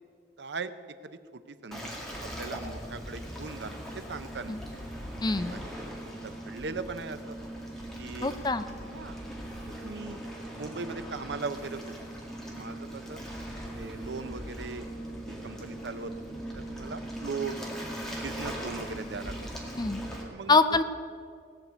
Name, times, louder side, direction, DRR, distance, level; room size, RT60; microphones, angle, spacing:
voice 1, 0.4-0.7 1.0-1.9 2.2-4.6 5.3-7.4 8.0-8.3 8.9-9.2 9.6-10.2 10.6-11.9 12.5-13.2 13.8-14.9 15.2-16.1 16.5-17.6 18.2-19.5 20.2-20.8, right 4 dB, 70° right, 12 dB, 0.7 m, -39 dB
Waves surf, 1.7-20.2, equal, ahead, 2.0 m, -40 dB
voice 2, 5.2-5.6 8.2-8.7 19.8-20.0 20.5-20.8, left 3 dB, 20° left, 10 dB, 0.5 m, -24 dB
18.0 x 6.6 x 8.3 m, 2.2 s
head